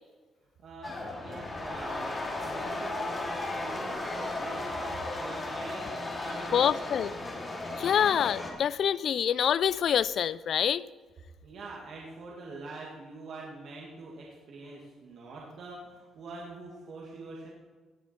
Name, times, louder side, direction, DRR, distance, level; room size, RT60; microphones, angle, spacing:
voice 1, 0.6-4.9 5.2-7.0 11.4-17.5, right 3 dB, 70° right, -3 dB, 2.1 m, -45 dB
sound 1, 0.8-8.5, left 2 dB, 30° left, 2.6 m, -35 dB
voice 2, 6.5-7.1 7.8-10.8, left 9 dB, 65° left, 19 dB, 0.4 m, -26 dB
17.5 x 7.1 x 4.4 m, 1.4 s
cardioid pair, 90°, 0 cm